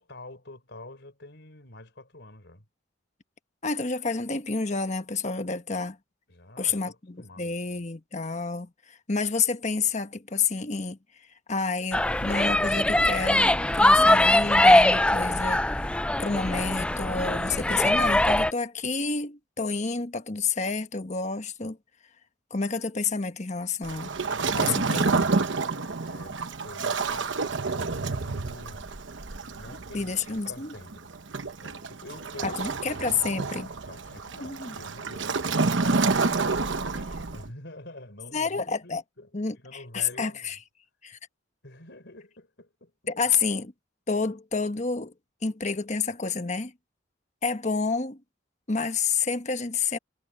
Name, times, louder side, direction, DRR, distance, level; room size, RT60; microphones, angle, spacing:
voice 1, 0.0-2.6 6.3-7.8 26.0-28.9 29.5-30.1 30.4-31.1 31.6-32.6 33.8-35.5 36.2-39.3 39.6-40.6 41.6-42.9, left 1 dB, 60° left, 4.8 m, -46 dB
voice 2, 3.6-6.0 6.6-11.0 11.5-15.7 16.2-21.8 22.5-24.1 24.6-25.3 29.9-30.7 32.4-33.7 34.4-34.7 38.3-39.0 39.3-40.6 41.0-41.2 43.1-43.7 44.1-45.1 45.4-46.7 47.4-48.2 48.7-50.0, left 4 dB, 40° left, 1.2 m, -29 dB
sound 1, 11.9-18.5, left 1 dB, 5° left, 0.3 m, -21 dB
Waves surf, 23.8-37.5, right 4 dB, 70° right, 1.1 m, -29 dB
head